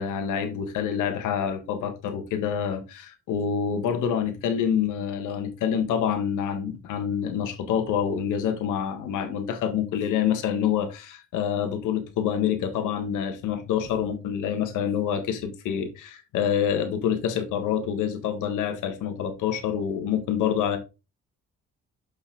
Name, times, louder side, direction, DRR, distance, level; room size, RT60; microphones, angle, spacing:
voice 1, 0.0-20.8, left 8 dB, 90° left, 1.5 m, -27 dB
6.7 x 6.0 x 3.5 m
cardioid pair, 90°, 30 cm